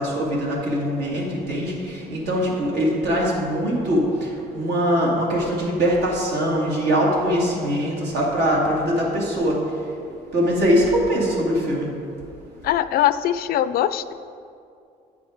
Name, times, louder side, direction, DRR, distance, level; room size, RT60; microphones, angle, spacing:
voice 1, 0.0-9.9 10.3-11.9, equal, 75° right, -3 dB, 2.2 m, -22 dB
voice 2, 12.6-14.1, left 11 dB, 65° left, 13 dB, 0.4 m, -21 dB
9.3 x 6.0 x 5.0 m, 2.5 s
cardioid pair, 110°, 17 cm